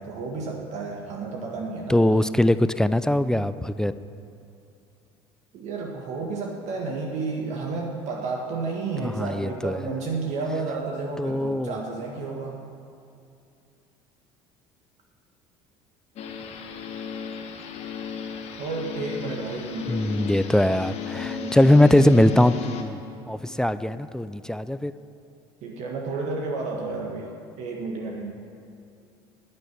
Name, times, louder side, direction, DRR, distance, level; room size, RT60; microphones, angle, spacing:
voice 1, 0.0-2.1 5.5-12.6 18.6-20.3 21.4-22.0 22.3-22.4 25.6-27.3 27.6-28.3, right 3 dB, 60° right, 0 dB, 1.6 m, -31 dB
voice 2, 1.9-3.9 9.0-9.9 11.2-11.7 19.9-23.0 23.3-24.9, left 1 dB, 5° left, 13 dB, 0.5 m, -21 dB
sound 1, 16.2-22.8, left 7 dB, 55° left, 1.6 m, -35 dB
10.5 x 9.1 x 9.5 m, 2.5 s
hypercardioid pair, 70°, 13 cm